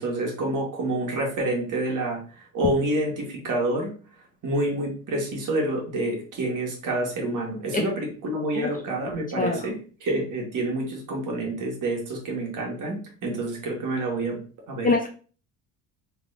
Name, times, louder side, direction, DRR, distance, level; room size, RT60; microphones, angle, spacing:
voice 1, 0.0-3.9 4.4-14.4 14.7-15.0, right 1 dB, 50° right, 0 dB, 1.6 m, -28 dB
voice 2, 7.7-7.8 8.6-8.7 9.4-9.6 14.8-15.1, left 3 dB, 20° left, 3 dB, 0.5 m, -23 dB
3.5 x 3.3 x 2.5 m, 0.38 s
supercardioid pair, 95°, 39 cm